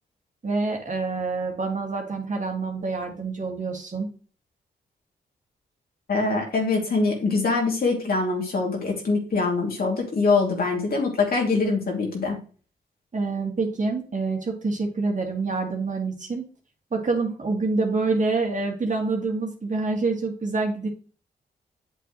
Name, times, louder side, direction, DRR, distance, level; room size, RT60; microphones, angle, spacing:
voice 1, 0.4-4.1 13.1-16.4 16.9-20.9, right 3 dB, 45° right, 1 dB, 2.3 m, -26 dB
voice 2, 6.1-12.4, left 3 dB, 60° left, 0 dB, 2.8 m, -23 dB
8.0 x 7.1 x 3.2 m, 0.38 s
supercardioid pair, 45°, 18 cm